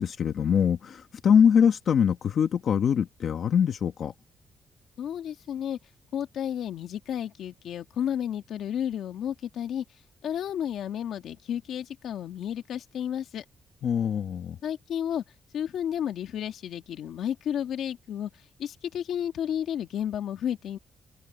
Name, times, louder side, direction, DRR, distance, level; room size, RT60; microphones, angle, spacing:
voice 1, 0.0-4.1 13.8-14.6, left 7 dB, 55° left, 1.2 m, -23 dB
voice 2, 5.0-5.8 6.1-9.8 10.2-13.4 14.6-15.2 15.5-20.8, left 9 dB, 75° left, 2.0 m, -32 dB
wide cardioid pair, 170°, 0 cm